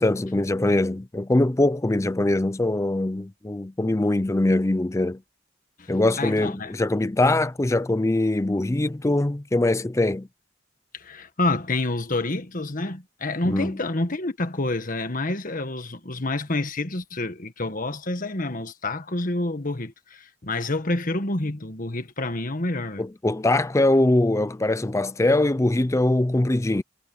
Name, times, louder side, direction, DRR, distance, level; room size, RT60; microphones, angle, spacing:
voice 1, 0.0-5.2 5.9-10.3 13.5-13.8 23.0-26.8, left 2 dB, 15° left, 0.5 m, -22 dB
voice 2, 5.8-6.7 10.9-23.0, left 2 dB, 45° left, 1.6 m, -28 dB
head